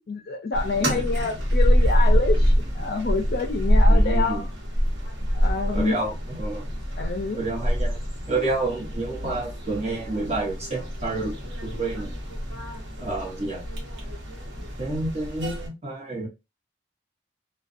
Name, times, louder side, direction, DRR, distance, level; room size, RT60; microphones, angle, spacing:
voice 1, 0.1-4.5 5.3-6.0 7.0-7.4, left 3 dB, 55° left, 0.4 m, -27 dB
sound 1, 0.5-15.7, equal, 75° right, 1.0 m, -25 dB
voice 2, 3.9-4.4 5.7-6.7 7.4-8.0 8.3-11.4 11.6-12.1 13.0-13.6 14.8-16.3, right 2 dB, 35° right, 1.1 m, -29 dB
2.5 x 2.2 x 2.4 m
head